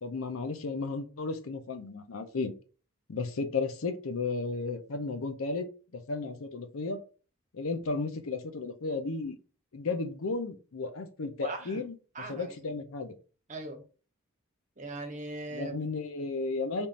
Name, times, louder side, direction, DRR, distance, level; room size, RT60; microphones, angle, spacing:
voice 1, 0.0-2.5 3.1-5.7 5.9-7.0 7.5-9.4 9.7-11.9 12.3-13.1 15.5-16.9, left 3 dB, 80° left, 0.7 m, -34 dB
voice 2, 11.4-11.8 12.1-12.7 13.5-13.8 14.8-15.7, right 2 dB, 35° right, 1.1 m, -40 dB
4.2 x 3.6 x 2.5 m
head